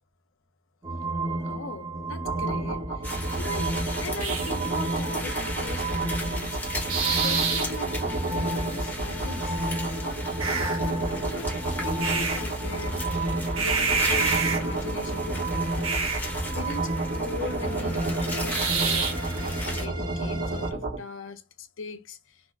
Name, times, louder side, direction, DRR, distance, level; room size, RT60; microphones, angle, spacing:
sound 1, 0.8-20.7, right 2 dB, 20° right, 0.5 m, -32 dB
voice 1, 1.4-2.8 3.1-6.5 7.2-9.5 10.0-11.5 11.8-13.0 13.6-15.9 16.5-16.9 17.1-18.0 18.3-21.4 21.8-22.2, left 4 dB, 65° left, 0.6 m, -40 dB
sound 2, 2.2-21.0, right 4 dB, 90° right, 1.0 m, -29 dB
sound 3, 3.0-19.9, left 1 dB, 10° left, 0.9 m, -37 dB
3.4 x 2.1 x 2.4 m
head